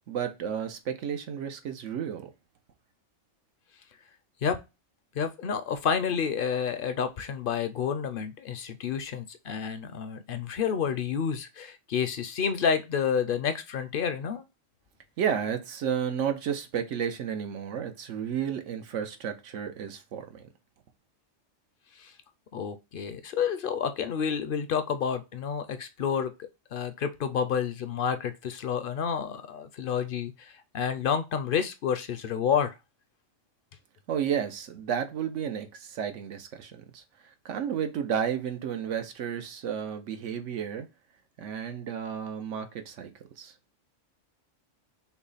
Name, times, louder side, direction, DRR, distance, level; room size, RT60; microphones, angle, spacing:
voice 1, 0.1-2.3 15.2-20.4 34.1-37.0 37.4-40.9 41.4-43.1 43.4-43.5, right 8 dB, 85° right, 1.1 m, -32 dB
voice 2, 5.2-14.4 22.0-22.1 22.5-26.3 26.7-32.7, left 7 dB, 60° left, 0.6 m, -29 dB
5.9 x 2.1 x 4.0 m
omnidirectional pair, 1.2 m